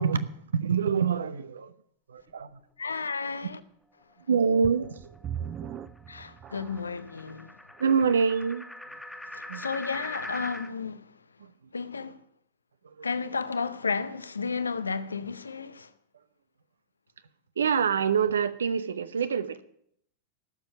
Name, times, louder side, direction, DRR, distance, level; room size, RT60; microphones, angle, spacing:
voice 1, 0.0-1.7 2.1-2.6 4.3-5.8 7.8-8.7 9.5-9.6 11.4-11.5 12.8-13.1 17.6-19.6, right 6 dB, 70° right, 0.8 m, -26 dB
voice 2, 2.8-3.6 6.1-7.6 9.3-11.2 11.7-12.2 13.0-15.9, left 5 dB, 75° left, 0.6 m, -32 dB
sound 1, 4.0-10.7, left 1 dB, 5° left, 1.1 m, -44 dB
sound 2, 4.6-7.1 7.7-7.8 8.4-8.5, right 9 dB, 30° right, 0.5 m, -39 dB
12.5 x 7.1 x 9.0 m
figure-of-eight pair, 90°, 0 cm